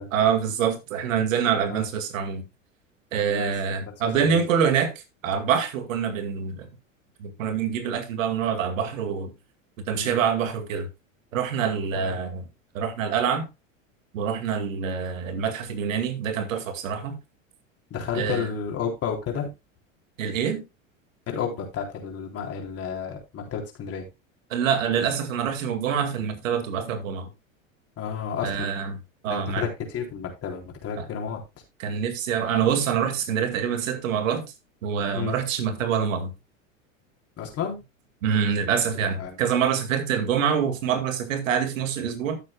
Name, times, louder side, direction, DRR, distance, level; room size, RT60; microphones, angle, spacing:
voice 1, 0.1-2.4 3.1-4.9 5.2-6.7 7.2-9.3 9.9-10.9 11.3-12.4 12.7-13.5 14.1-17.2 18.1-18.5 20.2-20.6 24.5-27.3 28.4-29.7 31.0-31.1 31.8-34.5 34.8-36.3 38.2-42.4, right 7 dB, 75° right, 2.2 m, -25 dB
voice 2, 4.1-4.4 10.0-10.2 11.9-12.2 17.9-19.5 21.3-24.1 28.0-28.8 29.3-31.4 35.1-35.4 37.4-37.8 39.2-39.4, left 7 dB, 35° left, 3.8 m, -31 dB
14.0 x 7.4 x 2.3 m
hypercardioid pair, 105°, 40 cm